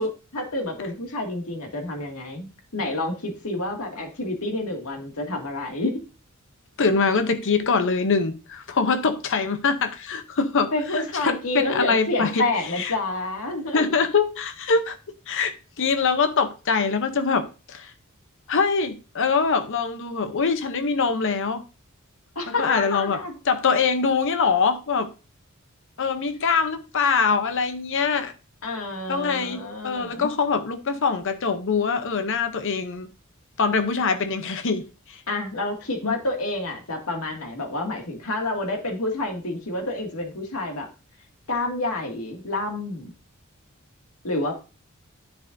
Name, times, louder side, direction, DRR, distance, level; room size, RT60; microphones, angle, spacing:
voice 1, 0.0-6.0 10.7-13.9 22.4-23.4 28.6-30.3 35.3-40.9 41.5-43.1 44.2-44.5, left 2 dB, 80° left, 2.2 m, -29 dB
voice 2, 6.8-12.4 12.8-12.9 13.7-17.9 18.5-21.6 22.5-23.2 23.4-25.1 26.0-28.3 29.1-33.1 33.6-35.2 36.0-36.1, left 5 dB, 60° left, 0.8 m, -23 dB
10.0 x 7.0 x 2.6 m
head